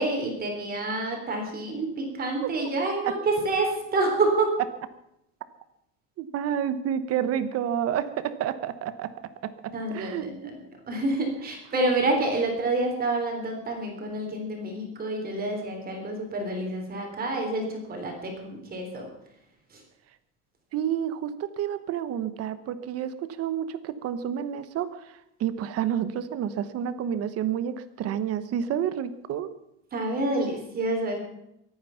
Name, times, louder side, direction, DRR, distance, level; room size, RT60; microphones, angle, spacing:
voice 1, 0.0-4.5 9.7-10.3 10.9-19.1 19.7-19.8 29.9-31.2, right 2 dB, 25° right, 2 dB, 3.6 m, -28 dB
voice 2, 6.2-9.1 9.4-10.5 11.7-11.8 20.7-29.5, right 9 dB, 40° right, 12 dB, 1.1 m, -30 dB
24.0 x 9.4 x 5.8 m, 0.82 s
cardioid pair, 160°, 36 cm